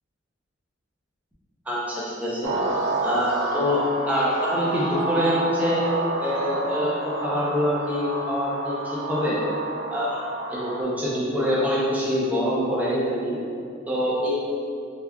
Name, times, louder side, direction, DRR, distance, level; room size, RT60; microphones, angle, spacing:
voice 1, 1.7-2.6 3.0-5.8 6.2-9.4 9.9-13.4 13.9-14.3, equal, 10° right, -8 dB, 0.5 m, -25 dB
sound 1, 2.4-10.8, right 2 dB, 90° right, 0.4 m, -29 dB
3.4 x 2.2 x 2.2 m, 2.4 s
head